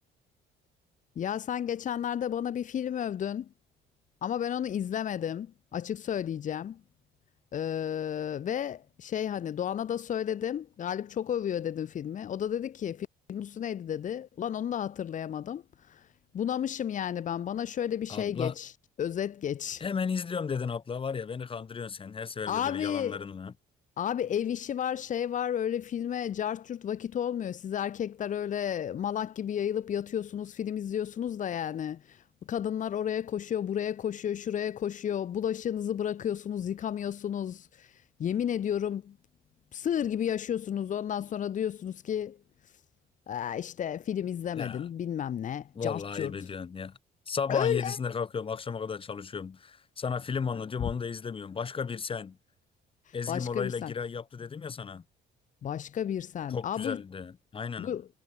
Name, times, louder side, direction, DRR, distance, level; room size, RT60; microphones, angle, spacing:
voice 1, 1.2-3.5 4.2-6.8 7.5-16.1 16.3-18.7 19.0-19.8 22.5-23.2 24.0-39.2 39.7-42.4 43.3-46.3 47.5-48.0 50.8-50.9 53.1-53.9 55.6-57.0 57.8-58.1, left 9 dB, 50° left, 2.1 m, -32 dB
voice 2, 18.1-18.5 19.8-23.5 44.5-44.8 45.7-47.0 47.3-52.4 53.1-55.0 56.5-57.9, left 6 dB, 30° left, 3.3 m, -34 dB
cardioid pair, 110°, 17 cm